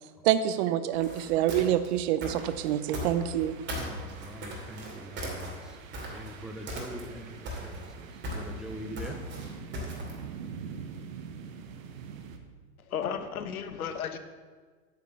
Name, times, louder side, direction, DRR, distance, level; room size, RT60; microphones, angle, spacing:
voice 1, 0.2-3.6, right 11 dB, 50° right, 12 dB, 0.8 m, -26 dB
sound 1, 0.9-3.4 3.7-6.4 6.7-7.2 7.5-10.2, equal, 25° right, 2.6 m, -37 dB
sound 2, 2.4-12.4, right 6 dB, 65° right, 1.3 m, -45 dB
voice 2, 3.8-5.8 6.1-9.2, right 1 dB, ahead, 4 dB, 0.4 m, -43 dB
voice 3, 12.8-14.2, left 7 dB, 85° left, 9 dB, 1.1 m, -34 dB
9.4 x 5.3 x 7.8 m, 1.5 s
hypercardioid pair, 125°, 42 cm